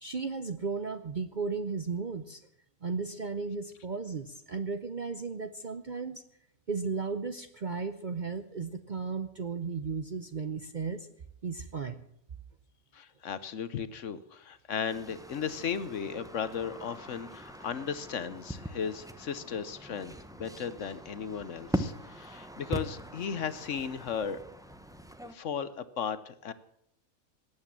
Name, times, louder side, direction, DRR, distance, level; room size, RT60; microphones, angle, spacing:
voice 1, 0.0-2.4 2.8-6.2 6.7-11.1 11.4-12.0, right 4 dB, 45° right, 10 dB, 0.7 m, -35 dB
voice 2, 12.9-24.4 25.2-26.5, left 7 dB, 60° left, 14 dB, 1.1 m, -36 dB
sound 1, 14.9-25.3, equal, 5° right, 0.6 m, -41 dB
18.5 x 8.7 x 7.3 m, 0.72 s
omnidirectional pair, 1.5 m